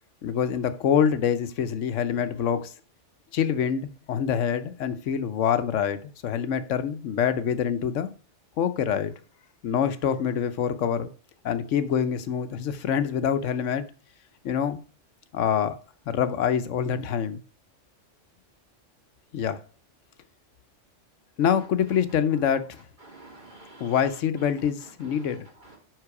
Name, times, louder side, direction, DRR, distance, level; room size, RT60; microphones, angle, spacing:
voice 1, 0.2-2.7 3.3-8.1 8.6-9.1 9.6-11.1 11.4-13.8 14.4-14.8 15.3-15.8 16.1-17.4 19.3-19.6 21.4-22.8 23.8-25.5, left 8 dB, 85° left, 1.1 m, -25 dB
voice 2, 23.0-24.0 25.0-25.8, right 2 dB, 40° right, 3.1 m, -49 dB
7.8 x 5.8 x 4.8 m
omnidirectional pair, 1.2 m